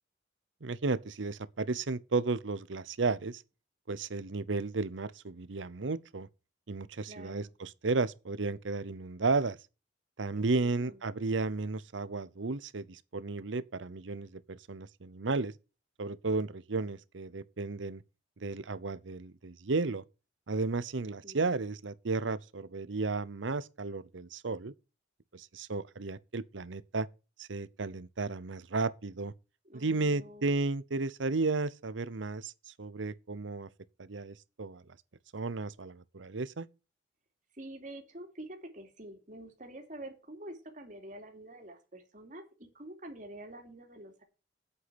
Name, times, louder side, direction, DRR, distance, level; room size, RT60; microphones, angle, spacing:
voice 1, 0.6-3.4 3.9-6.3 6.7-9.6 10.2-15.5 16.0-18.0 18.4-20.0 20.5-24.7 25.3-27.1 27.4-29.3 29.7-33.7 34.0-34.8 35.3-36.7, right 3 dB, 80° right, 0.8 m, -33 dB
voice 2, 7.1-7.5 10.3-11.0 21.0-21.5 29.6-30.6 37.5-44.2, right 1 dB, 40° right, 3.0 m, -47 dB
8.4 x 8.3 x 5.8 m
head